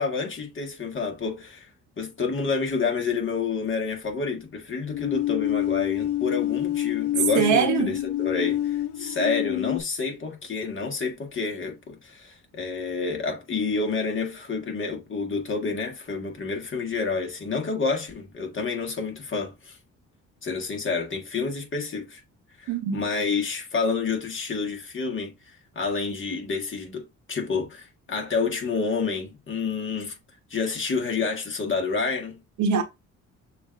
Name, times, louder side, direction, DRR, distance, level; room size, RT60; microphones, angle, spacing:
voice 1, 0.0-1.7 2.0-19.8 20.4-22.2 22.6-25.3 25.7-30.2 30.5-32.4, left 4 dB, 40° left, 1.6 m, -29 dB
sound 1, 4.9-9.8, left 14 dB, 90° left, 0.6 m, -27 dB
voice 2, 7.3-8.0 22.7-23.0 32.6-32.8, right 7 dB, 75° right, 1.0 m, -22 dB
6.8 x 2.7 x 2.5 m
cardioid pair, 90°, 30 cm